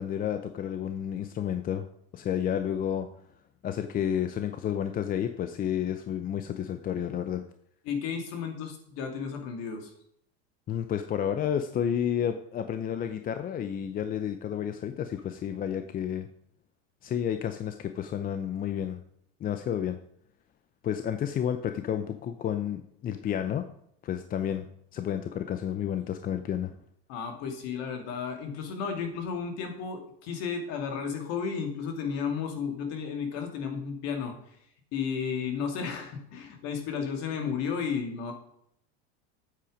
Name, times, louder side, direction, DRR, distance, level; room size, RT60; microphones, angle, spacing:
voice 1, 0.0-1.8 2.1-3.1 3.6-7.4 10.7-16.3 17.0-19.0 19.4-20.0 20.8-23.6 24.0-24.7 24.9-26.7, left 9 dB, 25° left, 9 dB, 0.6 m, -31 dB
voice 2, 7.8-9.9 27.1-34.4 34.9-38.3, left 6 dB, 55° left, 4 dB, 2.7 m, -33 dB
8.7 x 8.4 x 5.1 m, 0.69 s
supercardioid pair, 125°, 32 cm